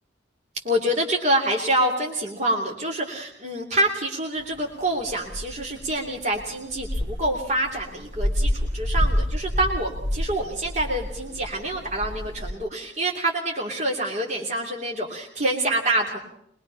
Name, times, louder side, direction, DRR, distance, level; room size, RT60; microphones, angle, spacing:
voice 1, 0.5-16.2, right 1 dB, 40° right, 0 dB, 3.0 m, -26 dB
sound 1, 4.4-12.5, equal, 85° right, 1.9 m, -28 dB
23.5 x 21.5 x 5.7 m, 0.74 s
head